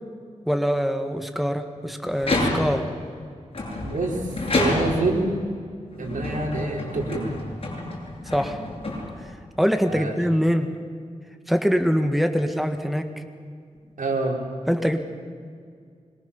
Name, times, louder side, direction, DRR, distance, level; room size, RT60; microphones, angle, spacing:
voice 1, 0.5-2.9 8.2-8.6 9.2-9.3 9.6-10.7 11.5-13.2 14.7-15.0, equal, ahead, 7 dB, 1.7 m, -23 dB
sound 1, 2.1-2.9 3.5-5.2 5.9-9.4, left 2 dB, 45° left, 7.8 m, -28 dB
voice 2, 3.8-4.2 4.5-5.4 6.0-7.3 9.9-10.1 14.0-14.4, right 2 dB, 80° right, 0 dB, 4.7 m, -26 dB
25.0 x 23.0 x 7.2 m, 2.1 s
wide cardioid pair, 80°, 13 cm